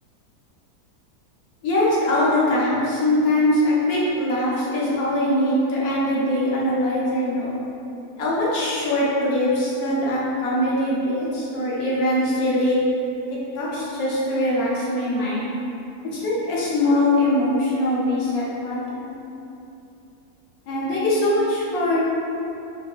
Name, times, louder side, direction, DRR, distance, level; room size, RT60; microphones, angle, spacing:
voice 1, 1.6-7.6 8.2-12.8 13.6-15.5 16.1-19.1 20.7-22.0, left 1 dB, 70° left, -6 dB, 1.2 m, -22 dB
4.0 x 2.7 x 2.2 m, 2.8 s
omnidirectional pair, 1.7 m